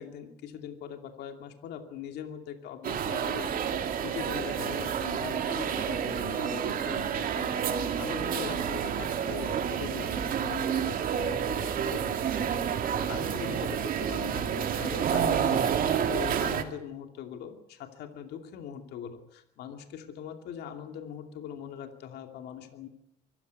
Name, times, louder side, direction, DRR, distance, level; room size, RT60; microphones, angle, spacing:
voice 1, 0.0-15.6 15.9-22.9, left 9 dB, 75° left, 5 dB, 2.7 m, -41 dB
sound 1, 2.8-16.6, right 8 dB, 55° right, 2.5 m, -29 dB
24.5 x 15.0 x 9.5 m, 0.80 s
cardioid pair, 110°, 17 cm